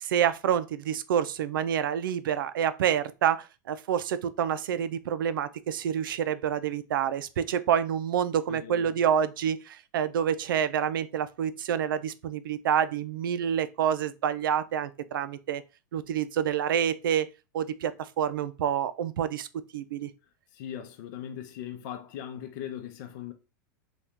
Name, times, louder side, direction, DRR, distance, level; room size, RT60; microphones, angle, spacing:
voice 1, 0.0-15.6 15.9-17.3 17.5-19.5 19.7-20.1, right 9 dB, 85° right, 0.4 m, -28 dB
voice 2, 8.5-9.0 20.5-23.3, left 10 dB, 60° left, 0.6 m, -39 dB
2.8 x 2.3 x 3.5 m
hypercardioid pair, 115°, 11 cm